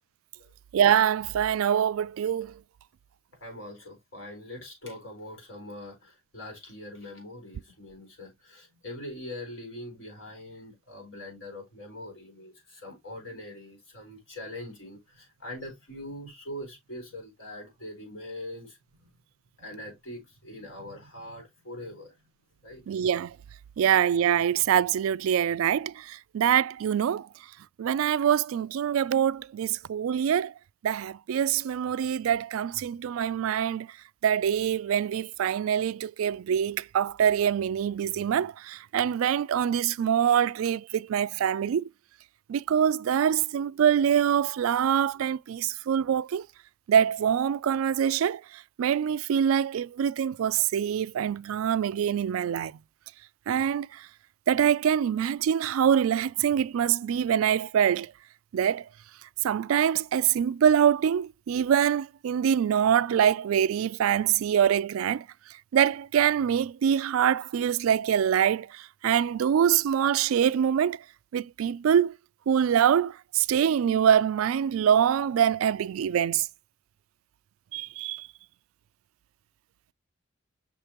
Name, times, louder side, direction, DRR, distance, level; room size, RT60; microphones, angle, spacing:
voice 1, 0.7-2.6 22.9-23.4 23.8-27.3 27.8-30.5 30.8-33.9 34.2-41.9 42.5-46.5 46.9-52.7 53.5-54.1 54.5-58.1 58.5-58.8 59.4-65.3 65.7-71.0 71.3-72.1 72.5-76.5 77.7-78.3, right 9 dB, 90° right, 0.3 m, -24 dB
voice 2, 3.4-19.1 19.6-22.1 22.6-22.8, left 1 dB, 70° left, 4.2 m, -42 dB
6.5 x 5.1 x 2.9 m
head